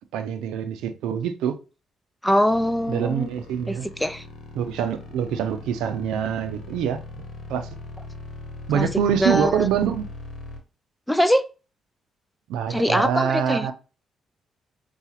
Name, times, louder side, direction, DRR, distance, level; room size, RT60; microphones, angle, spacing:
voice 1, 0.1-1.6 2.9-3.9 4.5-7.0 7.5-7.7 8.7-10.1 12.5-13.7, right 8 dB, 90° right, 0.5 m, -25 dB
voice 2, 2.2-3.3 4.0-4.2 8.7-8.9 9.2-9.7 11.1-11.5 12.7-13.7, equal, 5° left, 0.3 m, -22 dB
sound 1, 2.5-10.6, left 2 dB, 65° left, 1.1 m, -40 dB
5.7 x 2.4 x 2.8 m
cardioid pair, 90°, 0 cm